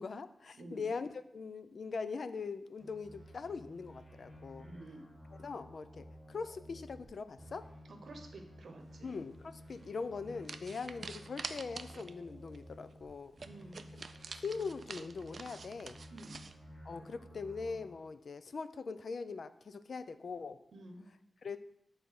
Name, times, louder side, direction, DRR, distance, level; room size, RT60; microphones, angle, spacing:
voice 1, 0.0-4.7 5.4-7.7 9.0-13.4 14.3-16.0 16.8-20.6 21.4-21.6, left 4 dB, 60° left, 12 dB, 0.4 m, -41 dB
voice 2, 0.5-0.9 4.6-5.0 7.9-9.2 13.4-13.8 16.1-16.4 20.7-21.0, right 2 dB, 70° right, 4 dB, 0.8 m, -50 dB
sound 1, 2.8-7.1 7.4-13.1 13.4-18.0, equal, 40° left, 2.8 m, -54 dB
sound 2, 9.7-9.9 10.4-12.2 12.5-12.6 12.9-13.0 13.4-16.5, right 4 dB, 50° right, 0.3 m, -47 dB
6.6 x 4.0 x 5.7 m, 0.78 s
wide cardioid pair, 155°, 0 cm